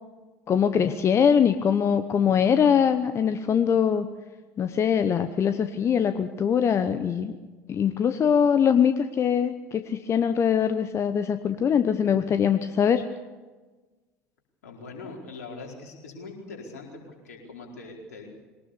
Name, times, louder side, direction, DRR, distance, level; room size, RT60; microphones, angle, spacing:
voice 1, 0.5-4.1 4.6-7.3 7.7-13.0, left 7 dB, 30° left, 10 dB, 1.0 m, -22 dB
voice 2, 14.6-18.3, left 3 dB, 70° left, 0 dB, 4.5 m, -42 dB
22.5 x 19.0 x 7.0 m, 1.3 s
figure-of-eight pair, 70°, 9 cm